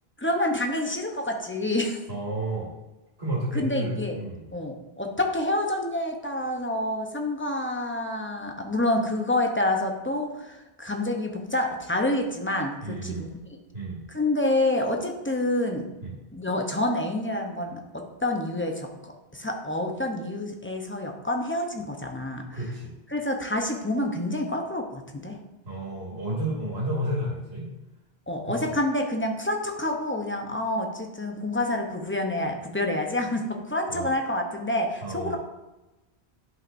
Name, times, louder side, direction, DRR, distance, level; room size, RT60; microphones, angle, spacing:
voice 1, 0.2-2.0 3.5-4.2 4.5-13.6 14.1-15.8 16.3-18.9 19.3-22.6 23.1-25.4 28.3-35.4, left 1 dB, 15° left, 2 dB, 0.7 m, -28 dB
voice 2, 2.1-2.7 3.2-4.5 12.8-13.3 13.7-14.0 16.0-16.1 22.5-22.9 25.7-27.7 28.5-28.6 33.9-34.1 35.0-35.4, right 1 dB, 80° right, -5 dB, 2.4 m, -31 dB
10.5 x 5.7 x 2.7 m, 1.0 s
omnidirectional pair, 1.1 m